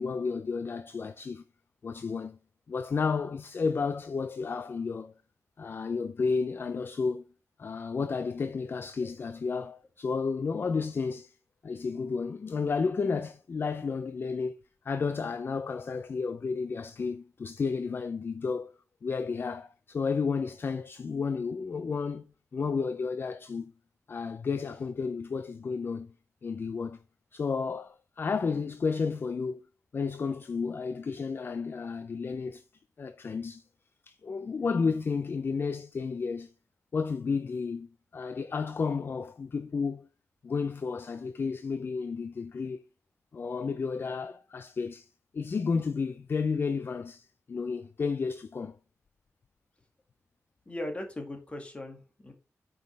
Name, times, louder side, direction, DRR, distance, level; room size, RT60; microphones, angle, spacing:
voice 1, 0.0-1.4 1.8-2.4 2.7-5.2 5.6-7.2 7.6-11.3 11.6-14.6 14.8-18.7 19.0-22.3 22.5-23.7 24.1-26.1 26.4-27.0 27.3-29.6 29.9-32.6 33.0-33.6 34.0-36.5 36.9-40.1 40.4-42.8 43.3-45.1 45.3-48.8, left 5 dB, 40° left, 0.4 m, -32 dB
voice 2, 50.7-52.3, left 1 dB, 20° left, 1.9 m, -38 dB
9.2 x 5.5 x 3.3 m
wide cardioid pair, 150°, 6 cm